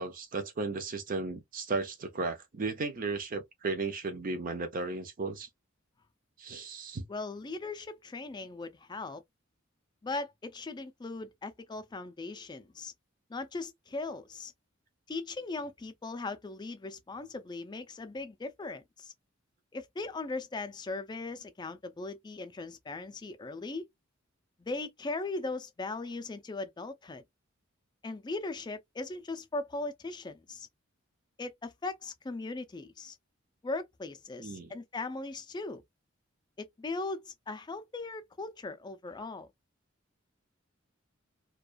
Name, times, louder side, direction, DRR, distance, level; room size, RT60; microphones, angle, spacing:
voice 1, 0.0-5.5 6.4-7.0 34.4-34.7, right 3 dB, 45° right, 0.6 m, -35 dB
voice 2, 7.1-9.2 10.0-12.9 13.3-14.5 15.1-19.1 19.7-23.9 24.6-27.2 28.0-30.7 31.4-33.2 33.6-35.8 36.6-39.5, left 3 dB, 20° left, 0.4 m, -39 dB
2.3 x 2.2 x 2.4 m
head